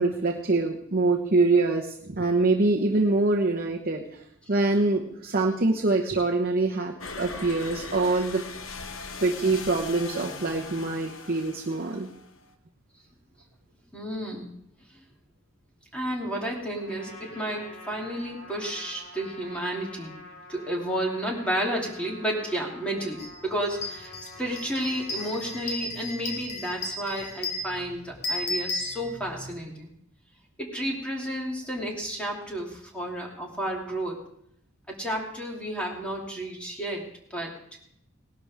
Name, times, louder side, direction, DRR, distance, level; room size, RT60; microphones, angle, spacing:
voice 1, 0.0-4.0 4.5-8.4 9.2-12.1, right 3 dB, 45° right, 0 dB, 1.0 m, -24 dB
sound 1, 7.0-12.5, left 4 dB, 65° left, 1.0 m, -40 dB
voice 2, 13.9-14.5 15.9-20.1 20.5-24.1 24.4-29.9 30.6-34.2 34.9-37.5, right 1 dB, 5° left, -2 dB, 2.8 m, -31 dB
Trumpet, 16.7-25.7, left 2 dB, 85° left, 4.4 m, -47 dB
sound 2, 23.2-23.3 23.7-29.5, left 2 dB, 50° left, 2.4 m, -34 dB
18.5 x 12.0 x 3.6 m, 0.72 s
head